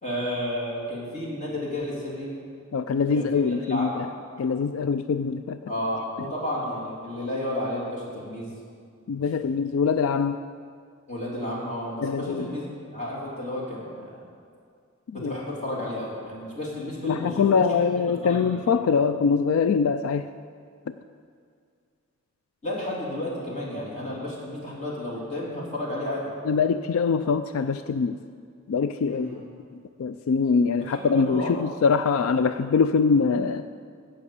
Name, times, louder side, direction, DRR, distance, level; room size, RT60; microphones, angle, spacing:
voice 1, 0.0-2.3 3.1-4.0 5.7-8.5 11.1-14.1 15.1-17.8 18.2-18.6 22.6-26.3 29.1-29.5 30.8-31.5, left 1 dB, 35° left, -4 dB, 2.9 m, -32 dB
voice 2, 2.7-4.1 4.4-5.6 9.1-10.4 12.0-12.5 15.2-15.3 17.0-20.3 26.5-28.2 28.7-29.4 30.0-33.6, left 5 dB, 85° left, 11 dB, 0.3 m, -23 dB
15.5 x 5.7 x 6.8 m, 2.2 s
head